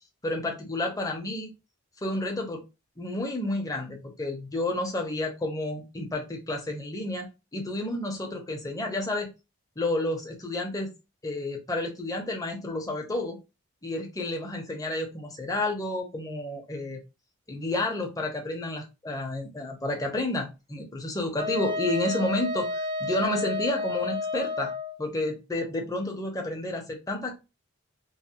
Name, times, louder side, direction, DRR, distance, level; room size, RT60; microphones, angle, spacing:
voice 1, 0.2-1.5 2.0-2.6 3.0-9.3 9.8-10.9 11.2-13.4 13.8-17.0 17.5-24.7 25.0-27.4, left 2 dB, 15° left, 1 dB, 0.7 m, -30 dB
Wind instrument woodwind instrument, 21.4-24.9, left 2 dB, 25° right, 0.4 m, -31 dB
3.1 x 2.0 x 2.8 m, 0.26 s
head